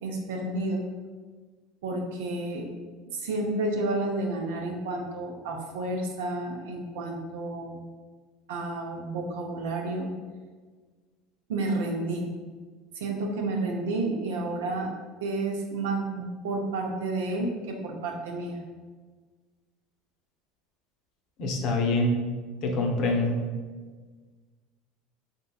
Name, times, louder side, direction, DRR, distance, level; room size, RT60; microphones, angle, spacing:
voice 1, 0.0-0.8 1.8-2.7 3.1-7.8 8.5-10.1 11.5-12.3 12.9-14.9 15.2-17.5 17.8-18.6, right 2 dB, 75° right, 1 dB, 0.6 m, -30 dB
voice 2, 21.4-22.2 22.6-23.4, left 2 dB, 55° left, 1 dB, 0.7 m, -25 dB
4.4 x 2.9 x 2.3 m, 1.4 s
hypercardioid pair, 80°, 0 cm